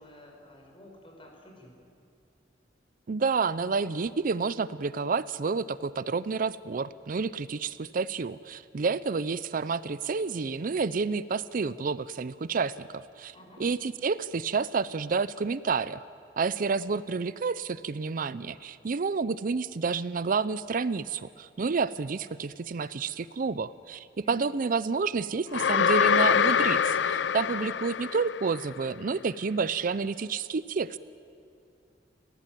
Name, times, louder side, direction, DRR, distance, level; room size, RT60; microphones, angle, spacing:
voice 1, 0.0-1.7 13.3-13.6 24.2-24.5, left 1 dB, 30° left, 1 dB, 5.5 m, -51 dB
voice 2, 3.1-13.3 13.6-16.0 16.4-31.0, right 4 dB, 50° right, 16 dB, 0.5 m, -29 dB
sound 1, 25.5-28.6, left 7 dB, 90° left, 0.5 m, -24 dB
30.0 x 16.0 x 9.1 m, 2.4 s
head